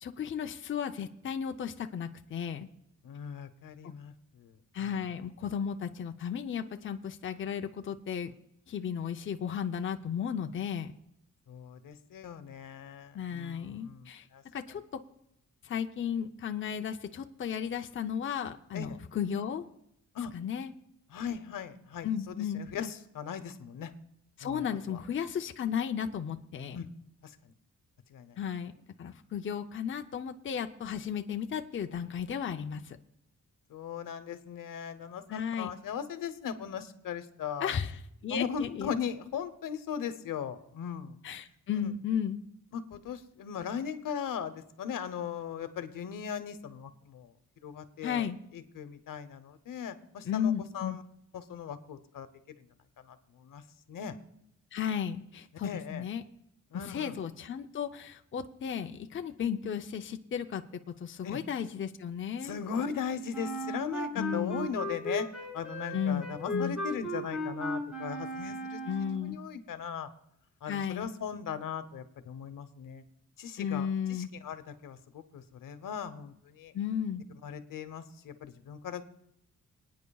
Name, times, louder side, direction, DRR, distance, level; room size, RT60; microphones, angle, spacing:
voice 1, 0.0-2.7 4.7-8.3 8.7-10.9 13.1-14.3 14.5-14.8 15.6-19.6 20.3-20.7 22.0-22.9 24.4-26.8 28.4-28.7 29.0-33.0 35.3-35.7 37.6-38.9 41.2-42.4 48.0-48.4 50.2-51.0 54.7-56.2 56.9-60.6 61.0-62.6 64.2-64.7 65.9-66.2 66.5-66.8 68.9-69.4 70.7-71.1 73.6-74.3 76.7-77.2, left 8 dB, 40° left, 6 dB, 0.6 m, -34 dB
voice 2, 3.0-4.6 11.5-14.4 18.7-19.0 20.1-20.3 21.1-23.9 24.4-25.0 26.7-26.9 27.2-27.3 28.1-28.4 33.7-37.7 38.3-41.2 41.8-41.9 42.7-47.3 47.6-48.3 48.5-51.0 51.3-52.3 53.1-53.6 53.9-54.1 55.6-56.0 56.7-57.2 61.2-61.4 62.4-65.3 65.5-68.8 69.2-70.1 70.6-73.0 73.4-76.7 77.4-79.0, left 7 dB, 85° left, 10 dB, 1.0 m, -38 dB
Wind instrument woodwind instrument, 63.3-69.3, equal, 5° right, 3.7 m, -36 dB
28.0 x 9.4 x 2.3 m, 0.77 s
wide cardioid pair, 140°, 32 cm